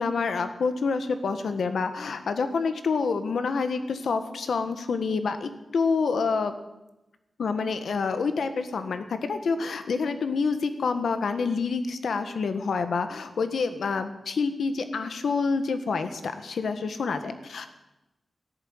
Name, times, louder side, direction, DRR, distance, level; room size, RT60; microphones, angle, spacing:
voice 1, 0.0-6.5 7.4-17.7, left 4 dB, 85° left, 9 dB, 1.5 m, -27 dB
14.0 x 11.0 x 9.3 m, 0.98 s
wide cardioid pair, 150°, 0 cm